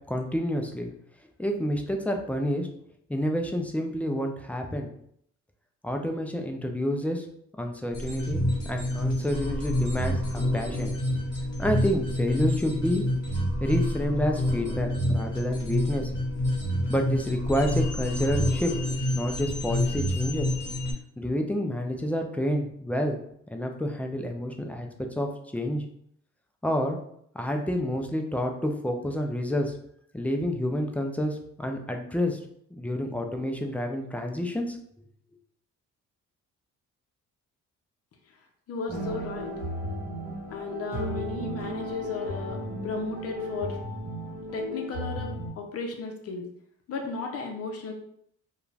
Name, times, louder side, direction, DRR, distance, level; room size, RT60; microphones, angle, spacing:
voice 1, 0.1-0.9 1.4-2.7 3.1-4.9 5.8-7.3 7.6-10.9 11.6-13.0 13.6-16.1 16.9-18.7 19.1-20.5 21.2-23.2 23.5-24.9 25.2-25.8 26.6-27.0 27.3-29.7 30.1-32.4 32.8-34.8, equal, 5° left, 3 dB, 0.3 m, -29 dB
sound 1, 7.9-20.9, left 1 dB, 35° left, 1.4 m, -28 dB
voice 2, 38.7-39.5 40.5-43.8 44.5-46.5 46.9-47.9, left 4 dB, 50° left, 3 dB, 0.7 m, -34 dB
sound 2, 38.9-45.5, equal, 30° right, 1.1 m, -35 dB
2.4 x 2.3 x 3.1 m, 0.68 s
cardioid pair, 90°, 30 cm